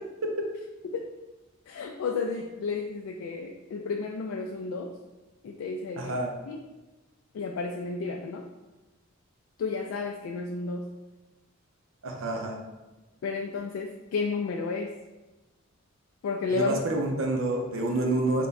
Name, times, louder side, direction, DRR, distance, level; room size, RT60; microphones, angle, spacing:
voice 1, 1.7-4.9 5.4-6.1 6.5-6.6 7.3-8.4 9.6-10.9 13.2-15.0 16.2-16.9, left 4 dB, 85° left, 3 dB, 0.3 m, -32 dB
voice 2, 6.0-6.3 12.0-12.6 16.5-18.5, right 2 dB, 75° right, 2 dB, 0.6 m, -28 dB
3.4 x 2.2 x 4.0 m, 1.1 s
head